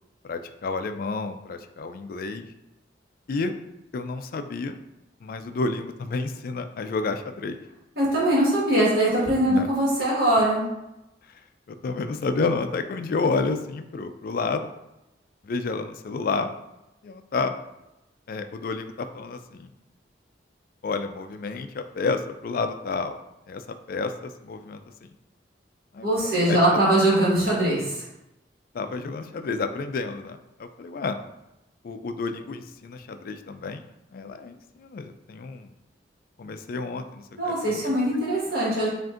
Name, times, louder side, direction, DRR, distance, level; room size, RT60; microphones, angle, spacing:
voice 1, 0.2-2.5 3.3-3.5 3.9-4.8 5.2-7.6 9.5-9.7 11.2-11.4 11.7-14.7 15.4-16.5 17.0-17.6 18.3-19.7 20.8-23.2 23.5-25.1 25.9-26.8 28.7-31.2 31.8-33.8 34.1-35.7 36.4-37.9, left 3 dB, 50° left, 8 dB, 0.3 m, -30 dB
voice 2, 8.0-10.6 26.0-28.0 37.4-38.9, right 1 dB, 55° right, -6 dB, 1.6 m, -22 dB
7.4 x 2.6 x 2.5 m, 0.92 s
head